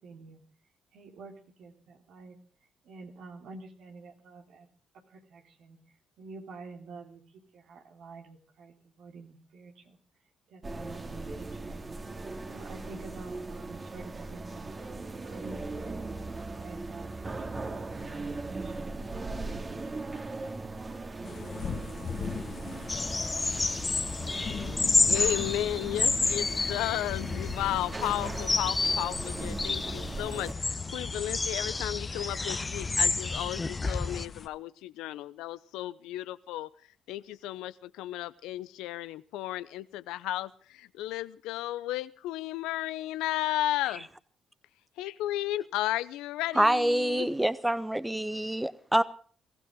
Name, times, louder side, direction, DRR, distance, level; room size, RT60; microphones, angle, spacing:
voice 1, 0.0-0.4 0.9-2.4 2.8-4.7 5.1-10.0 10.5-11.8 12.5-14.7 15.2-18.8 19.1-20.0 20.3-20.5 21.2-22.2 22.6-23.2, right 3 dB, 70° right, 4 dB, 3.5 m, -49 dB
sound 1, 10.6-30.5, right 3 dB, 35° right, 2.4 m, -39 dB
sound 2, 21.2-34.5, left 6 dB, 55° left, 1.7 m, -41 dB
sound 3, 22.9-34.3, left 3 dB, 30° left, 0.7 m, -30 dB
voice 2, 25.1-36.7 37.1-44.1 45.0-47.3, left 14 dB, 85° left, 16 dB, 0.8 m, -34 dB
voice 3, 46.5-49.0, right 1 dB, 10° right, 15 dB, 1.1 m, -26 dB
23.0 x 15.5 x 3.8 m, 0.43 s
supercardioid pair, 55°, 0 cm